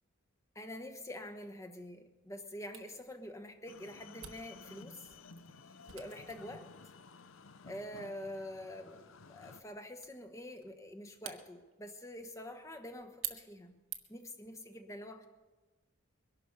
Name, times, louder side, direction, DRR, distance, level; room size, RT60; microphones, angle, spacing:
voice 1, 0.5-5.1 5.9-6.7 7.6-13.8 14.1-15.3, left 1 dB, 15° left, 5 dB, 1.1 m, -46 dB
Camera, 2.7-14.3, right 11 dB, 85° right, 1.3 m, -51 dB
sound 1, 3.7-9.6, left 4 dB, 70° left, 0.7 m, -54 dB
22.5 x 11.5 x 5.4 m, 1.2 s
head